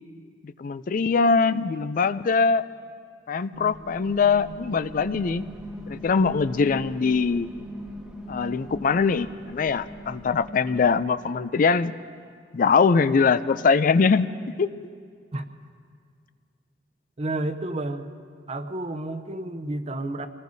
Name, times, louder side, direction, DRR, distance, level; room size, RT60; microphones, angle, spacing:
voice 1, 0.4-2.6 3.3-5.5 5.9-7.5 8.3-11.9 12.5-14.3 14.6-14.7, left 5 dB, 50° left, 14 dB, 0.4 m, -22 dB
sound 1, 3.5-11.3, equal, 5° right, 1.4 m, -40 dB
voice 2, 17.2-18.1 18.5-20.3, right 2 dB, 35° right, 8 dB, 0.7 m, -30 dB
26.5 x 19.0 x 2.7 m, 2.1 s
head